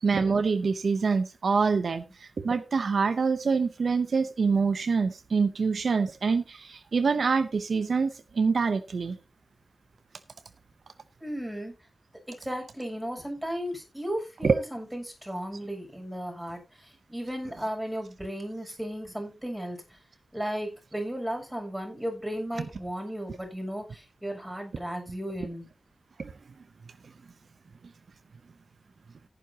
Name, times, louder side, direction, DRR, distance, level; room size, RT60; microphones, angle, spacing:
voice 1, 0.0-2.0 2.4-8.1 8.4-9.2 14.4-14.6 26.2-26.3, right 5 dB, 75° right, 0.7 m, -25 dB
voice 2, 11.2-11.7 12.3-16.6 17.1-19.8 20.3-25.6, equal, 10° right, 7.3 m, -35 dB
15.5 x 9.6 x 2.9 m
cardioid pair, 60°, 0 cm